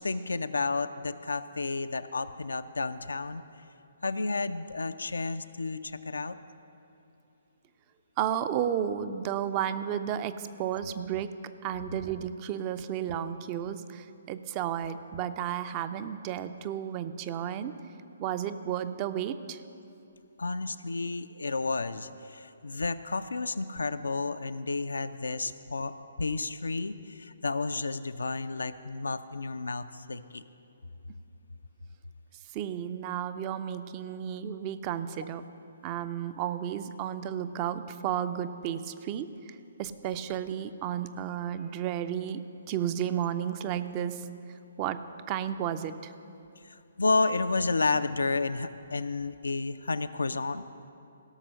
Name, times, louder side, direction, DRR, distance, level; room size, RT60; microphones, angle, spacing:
voice 1, 0.0-3.4 4.0-6.4 11.0-11.1 20.4-30.4 46.6-50.6, left 3 dB, 75° left, 11 dB, 0.4 m, -31 dB
voice 2, 8.2-17.7 18.2-19.6 32.5-35.4 35.8-44.3 44.8-46.1, right 9 dB, 30° right, 11 dB, 0.5 m, -33 dB
16.5 x 6.1 x 6.4 m, 2.7 s
figure-of-eight pair, 130°, 0 cm